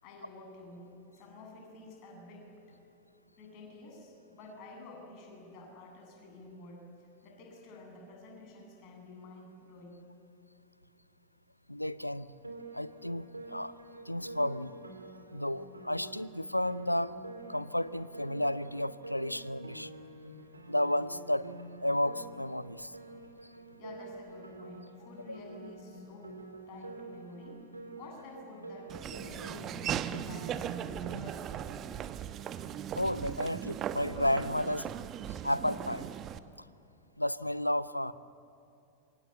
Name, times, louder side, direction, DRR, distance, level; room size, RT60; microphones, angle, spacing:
voice 1, 0.0-2.8 3.4-10.1 23.7-26.3 26.7-27.6 27.9-31.6, left 2 dB, 40° left, 1 dB, 8.0 m, -50 dB
voice 2, 11.7-12.3 12.7-13.7 14.1-14.8 15.3-17.1 17.5-20.0 20.7-21.5 21.8-22.9 25.3-25.4 32.9-34.9 35.4-36.1 36.6-36.7 37.2-38.1, left 1 dB, 85° left, 17 dB, 0.7 m, -32 dB
Piano, 12.4-31.6, right 2 dB, 80° right, 2.9 m, -48 dB
Laughter / Walk footsteps, 28.9-36.4, right 10 dB, 30° right, 1.1 m, -38 dB
27.5 x 24.5 x 8.2 m, 2.6 s
figure-of-eight pair, 90°, 0 cm